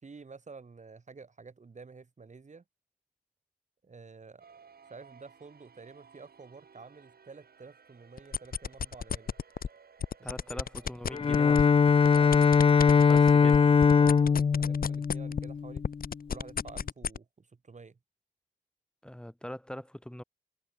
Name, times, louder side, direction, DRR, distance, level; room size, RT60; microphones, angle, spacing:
voice 1, 0.0-2.6 3.8-4.4 4.8-9.4 10.2-10.6 12.1-15.8 16.3-18.0, right 4 dB, 50° right, 2.9 m, -50 dB
sound 1, 4.4-11.4, right 6 dB, 75° right, 6.2 m, -58 dB
sound 2, 8.2-9.7 10.0-15.5 15.8-17.2, left 7 dB, 65° left, 1.0 m, -32 dB
voice 2, 10.2-11.7 13.1-13.6 19.0-20.2, equal, 5° left, 5.5 m, -42 dB
Bowed string instrument, 11.1-16.1, left 6 dB, 35° left, 0.3 m, -22 dB
wide cardioid pair, 80°, 16 cm